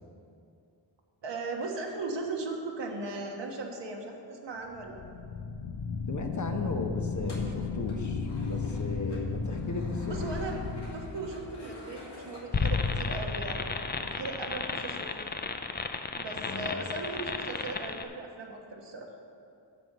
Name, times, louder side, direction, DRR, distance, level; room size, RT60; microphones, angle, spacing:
voice 1, 1.2-5.0 10.1-10.6 10.9-13.6 14.0-15.3 16.2-19.1, right 3 dB, 65° right, 1 dB, 1.4 m, -38 dB
sound 1, 4.7-11.8, left 5 dB, 85° left, 0.9 m, -35 dB
voice 2, 6.1-10.3 16.5-16.8, left 3 dB, 40° left, 4 dB, 1.0 m, -36 dB
sound 2, 7.1-13.1, left 1 dB, 60° left, 2.4 m, -48 dB
sound 3, 12.5-18.0, left 4 dB, 20° left, 0.5 m, -32 dB
10.0 x 5.2 x 7.5 m, 2.5 s
cardioid pair, 80°, 46 cm